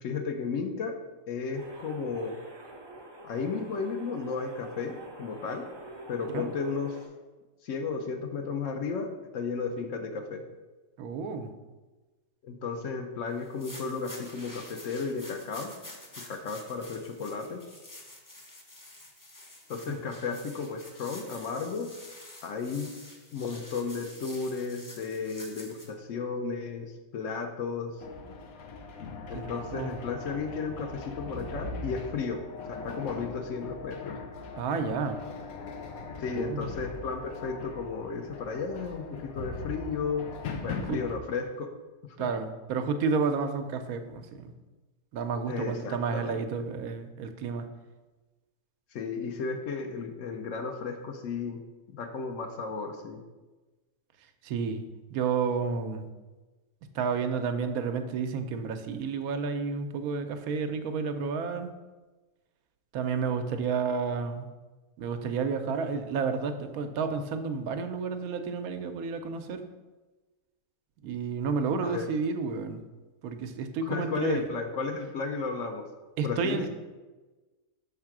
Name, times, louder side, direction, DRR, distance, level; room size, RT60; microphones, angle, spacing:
voice 1, 0.0-1.0 1.3-2.4 3.2-5.6 6.1-7.0 7.6-9.1 9.3-10.4 12.4-15.7 16.3-17.6 19.7-21.9 22.4-22.9 23.3-27.9 29.3-32.4 32.7-34.1 36.2-40.2 40.6-41.7 42.2-42.3 45.5-46.4 48.9-51.6 51.9-53.2 71.8-72.1 73.9-75.8 76.2-76.7, left 5 dB, 65° left, 5 dB, 1.0 m, -34 dB
sound 1, 1.5-7.1, right 1 dB, 30° right, 0.4 m, -47 dB
voice 2, 11.0-11.5 19.9-20.0 29.3-29.9 34.6-35.2 36.3-36.7 40.9-41.0 42.2-44.5 45.1-47.7 54.4-54.8 55.1-56.1 56.9-61.7 62.9-64.5 65.0-69.6 71.0-72.8 73.2-74.4 76.2-76.7, right 5 dB, 85° right, 8 dB, 1.1 m, -31 dB
sound 2, 13.4-25.9, left 1 dB, 25° left, 0.4 m, -48 dB
sound 3, 28.0-41.2, left 3 dB, 90° left, 1.1 m, -40 dB
5.5 x 3.6 x 5.9 m, 1.2 s
omnidirectional pair, 1.5 m